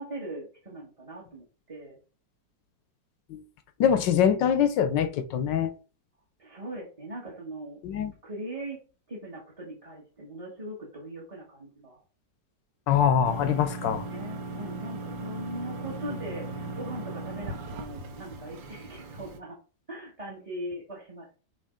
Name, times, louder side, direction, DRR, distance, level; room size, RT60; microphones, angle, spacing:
voice 1, 0.0-2.0 6.4-7.8 8.2-8.8 9.1-12.0 13.5-13.6 14.1-19.6 19.9-21.4, right 1 dB, 20° right, 1.6 m, -40 dB
voice 2, 3.8-5.7 7.8-8.1 12.9-14.1, left 8 dB, 75° left, 1.4 m, -23 dB
sound 1, 13.2-19.4, right 3 dB, 85° right, 1.7 m, -38 dB
6.5 x 3.2 x 5.1 m
omnidirectional pair, 2.0 m